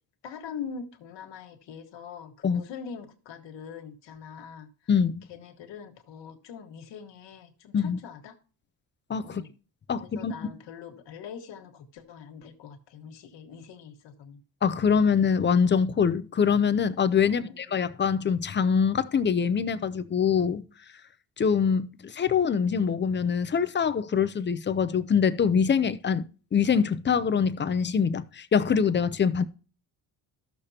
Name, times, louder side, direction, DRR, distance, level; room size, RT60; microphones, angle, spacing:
voice 1, 0.2-4.7 5.3-8.4 9.2-9.5 10.0-14.4 17.3-17.6, left 7 dB, 85° left, 1.6 m, -43 dB
voice 2, 4.9-5.2 7.7-8.0 9.1-9.4 9.9-10.3 14.6-20.6 21.4-26.2 26.5-29.4, left 6 dB, 25° left, 0.5 m, -24 dB
13.5 x 6.7 x 2.8 m
cardioid pair, 145°, 42 cm